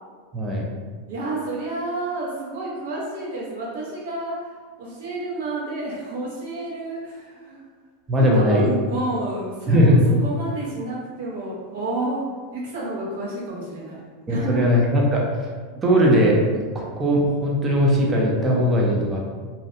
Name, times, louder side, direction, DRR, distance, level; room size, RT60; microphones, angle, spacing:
voice 1, 0.3-0.6 8.1-8.6 9.7-10.0 14.3-15.5 15.8-16.4 16.7-19.2, equal, 15° right, -3 dB, 0.4 m, -19 dB
voice 2, 1.1-4.5 4.8-7.6 8.1-12.2 12.5-14.0 14.3-14.7 15.7-15.8, right 2 dB, 75° right, -5 dB, 0.9 m, -30 dB
2.5 x 2.1 x 2.6 m, 1.5 s
supercardioid pair, 160°, 0 cm